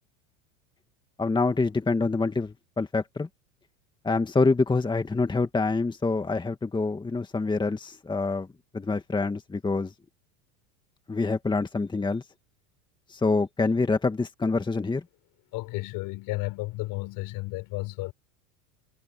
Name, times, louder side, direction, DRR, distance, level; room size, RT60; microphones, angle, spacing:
voice 1, 1.2-3.3 4.0-8.5 8.7-9.9 11.1-12.2 13.1-15.0, left 3 dB, 10° left, 1.9 m, -26 dB
voice 2, 15.5-18.1, left 21 dB, 55° left, 4.8 m, -33 dB
supercardioid pair, 110°, 39 cm